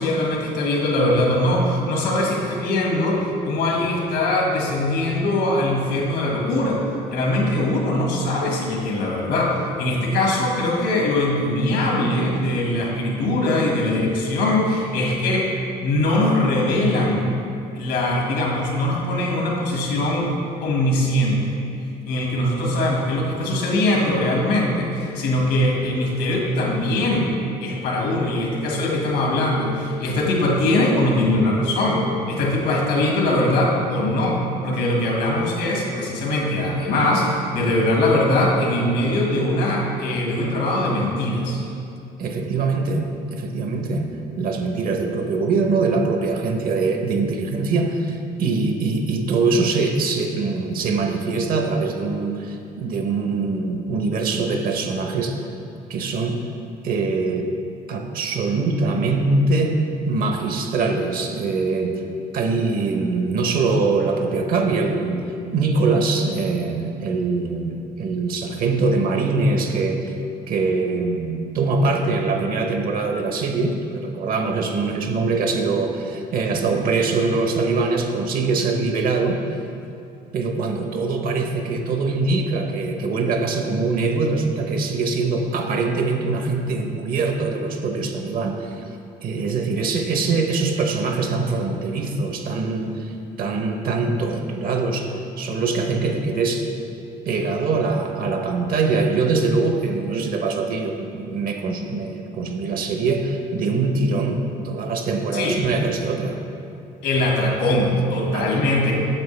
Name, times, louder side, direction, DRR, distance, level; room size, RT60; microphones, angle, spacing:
voice 1, 0.0-6.8 7.1-15.5 15.8-17.3 17.7-20.3 20.6-21.5 22.0-27.3 27.6-41.6 105.3-105.6 107.0-108.9, left 1 dB, 85° left, -2 dB, 1.8 m, -21 dB
voice 2, 42.2-43.1 43.3-44.1 44.4-55.4 55.9-56.4 56.8-57.5 57.9-59.8 60.1-62.0 62.3-65.2 65.5-70.0 70.5-79.4 80.3-88.8 89.2-96.7 97.2-106.4 108.3-108.6, right 3 dB, 60° right, 4 dB, 0.9 m, -23 dB
8.6 x 6.7 x 3.3 m, 2.7 s
cardioid pair, 110°, 17 cm